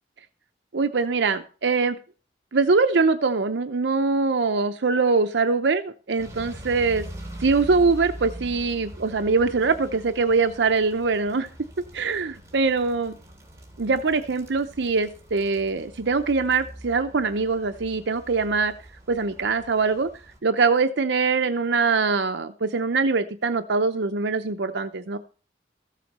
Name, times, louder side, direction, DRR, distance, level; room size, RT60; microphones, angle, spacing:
voice 1, 0.7-2.0 2.5-7.1 7.4-11.5 11.9-13.1 13.8-18.7 19.1-20.1 20.4-25.2, right 4 dB, 80° right, 9 dB, 0.7 m, -23 dB
sound 1, 6.2-20.4, right 1 dB, 15° right, 2.9 m, -43 dB
14.5 x 7.5 x 5.4 m, 0.39 s
head